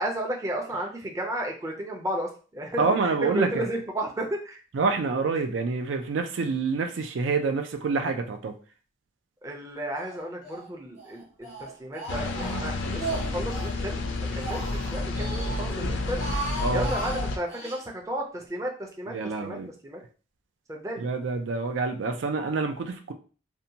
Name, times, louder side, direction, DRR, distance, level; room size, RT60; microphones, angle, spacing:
voice 1, 0.0-4.6 9.4-16.3 16.7-19.6 19.8-20.0 20.7-21.0, right 1 dB, 15° right, 0 dB, 0.4 m, -33 dB
voice 2, 2.8-3.7 4.7-8.5 16.6-16.9 19.1-19.7 21.0-23.1, right 4 dB, 85° right, 6 dB, 0.4 m, -27 dB
Speech, 9.9-10.7 11.0-13.8 14.2-15.6 16.0-17.8, right 2 dB, 35° right, 1.0 m, -37 dB
sound 1, 12.1-17.4, left 2 dB, 90° left, 0.5 m, -30 dB
2.6 x 2.2 x 2.7 m, 0.37 s
head